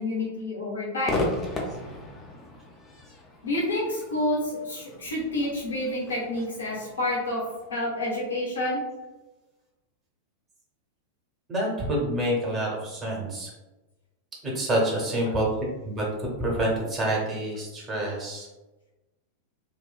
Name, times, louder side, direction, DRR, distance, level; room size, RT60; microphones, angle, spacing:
voice 1, 0.0-1.3 3.4-7.4 7.7-8.8 15.3-15.4, left 1 dB, 70° left, -4 dB, 0.8 m, -29 dB
Crowd / Fireworks, 1.0-8.4, left 2 dB, 20° left, 0.5 m, -36 dB
voice 2, 11.5-13.5 14.4-15.5 15.8-18.5, right 1 dB, 20° right, -3 dB, 0.8 m, -27 dB
2.7 x 2.1 x 2.2 m, 1.1 s
figure-of-eight pair, 90°, 0 cm